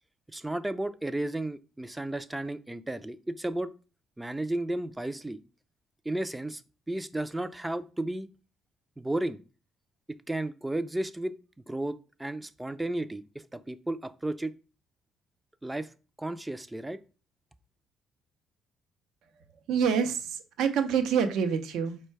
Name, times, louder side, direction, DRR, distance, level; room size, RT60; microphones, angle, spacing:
voice 1, 0.3-3.7 4.2-5.4 6.0-6.6 6.9-8.3 9.0-9.4 10.1-11.4 11.7-14.5 15.6-15.9 16.2-17.0, right 1 dB, 10° right, 14 dB, 0.4 m, -33 dB
voice 2, 19.7-22.0, right 7 dB, 75° right, 8 dB, 0.6 m, -27 dB
4.4 x 2.2 x 4.5 m, 0.35 s
supercardioid pair, 70°, 0 cm